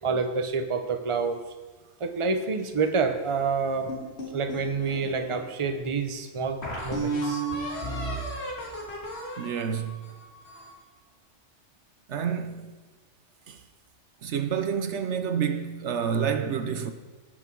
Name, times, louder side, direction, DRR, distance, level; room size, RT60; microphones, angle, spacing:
voice 1, 0.0-1.4 2.0-3.9 4.3-7.4 8.3-8.4, right 4 dB, 30° right, 0.8 m, -28 dB
sound 1, 3.9-5.4 6.0-6.1 6.6-10.8, right 2 dB, 60° left, 2.6 m, -33 dB
voice 2, 9.4-10.1 12.1-12.7 13.5-13.6 14.2-16.9, right 7 dB, 75° right, 1.1 m, -29 dB
18.0 x 6.2 x 4.6 m
omnidirectional pair, 1.2 m